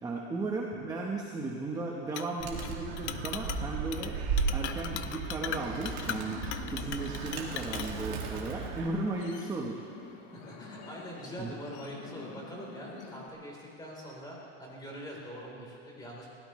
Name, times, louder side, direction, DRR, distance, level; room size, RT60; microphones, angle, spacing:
voice 1, 0.0-4.2 4.5-6.4 6.7-9.8 11.4-11.5, right 2 dB, 10° right, -2 dB, 1.1 m, -35 dB
Chink clink, 2.1-2.7 3.0-3.6 3.9-4.1 4.4-7.9, left 12 dB, 90° left, 0.8 m, -39 dB
Animal, 2.4-8.9, right 5 dB, 50° right, 2.3 m, -35 dB
sound 1, 5.4-13.3, left 5 dB, 70° left, 1.7 m, -48 dB
voice 2, 10.3-16.3, equal, 10° left, -3 dB, 3.8 m, -43 dB
23.5 x 16.5 x 3.2 m, 2.7 s
supercardioid pair, 155°, 33 cm